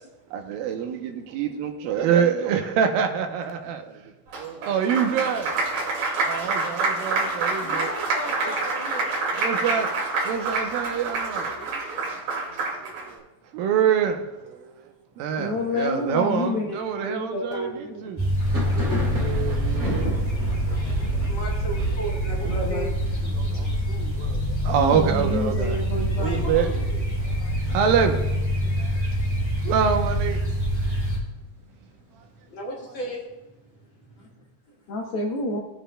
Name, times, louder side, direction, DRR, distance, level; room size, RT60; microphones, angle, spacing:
voice 1, 0.3-5.9 6.2-7.9 8.4-8.5 9.3-9.9 10.2-11.6 12.5-13.2 13.5-18.2 18.5-18.7 19.1-20.1 20.8-21.2 23.2-25.8 26.2-26.7 27.2-28.3 28.6-29.0 29.6-30.4 32.1-32.2, right 7 dB, 90° right, 2.5 m, -26 dB
Applause, 4.3-13.1, right 3 dB, 65° right, 3.4 m, -27 dB
voice 2, 7.6-9.2 11.1-11.8 18.7-18.8 19.9-20.1 21.3-22.9 26.2-27.0 27.3-27.8 28.7-29.4 31.1-31.2 31.8-34.7, equal, 45° left, 1.8 m, -37 dB
voice 3, 15.4-18.0 22.4-22.9 24.8-26.7 34.9-35.6, left 2 dB, 75° left, 1.3 m, -29 dB
sound 1, 18.2-31.2, equal, 10° left, 2.7 m, -25 dB
Thunder, 18.4-27.9 28.1-28.8 29.1-30.1 30.5-32.2, equal, 35° right, 2.9 m, -37 dB
18.0 x 7.7 x 2.2 m
omnidirectional pair, 4.0 m